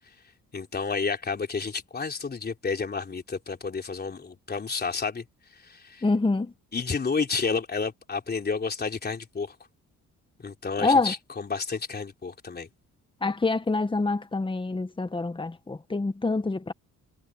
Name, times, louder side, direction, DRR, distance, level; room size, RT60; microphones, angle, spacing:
voice 1, 0.5-5.2 5.6-6.1 6.7-9.6 10.4-12.7, left 5 dB, 35° left, 3.5 m, -30 dB
voice 2, 6.0-6.5 10.8-11.1 13.2-16.7, left 3 dB, 15° left, 1.5 m, -26 dB
cardioid pair, 90°, 30 cm